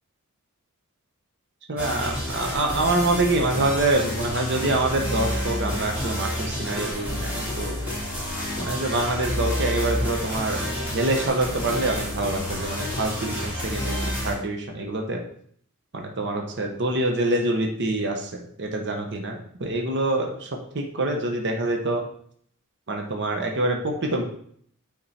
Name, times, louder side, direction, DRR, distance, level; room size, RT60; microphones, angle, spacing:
voice 1, 1.7-7.8 8.6-15.2 15.9-18.3 18.6-22.0 22.9-24.2, right 2 dB, 55° right, 3 dB, 0.9 m, -26 dB
sound 1, 1.8-14.3, left 1 dB, 10° right, 3.3 m, -29 dB
8.8 x 3.8 x 4.2 m, 0.63 s
head